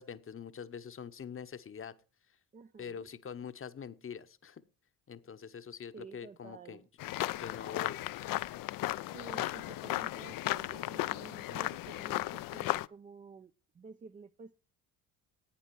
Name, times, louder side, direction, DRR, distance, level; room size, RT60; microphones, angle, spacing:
voice 1, 0.0-1.9 2.8-4.6 5.1-6.8 7.4-8.0, left 7 dB, 30° left, 0.9 m, -44 dB
voice 2, 2.5-3.1 5.9-6.9 9.1-14.6, right 4 dB, 20° right, 0.4 m, -51 dB
sound 1, 7.0-12.9, left 16 dB, 55° left, 0.5 m, -35 dB
11.0 x 8.8 x 4.6 m
hypercardioid pair, 60°, 42 cm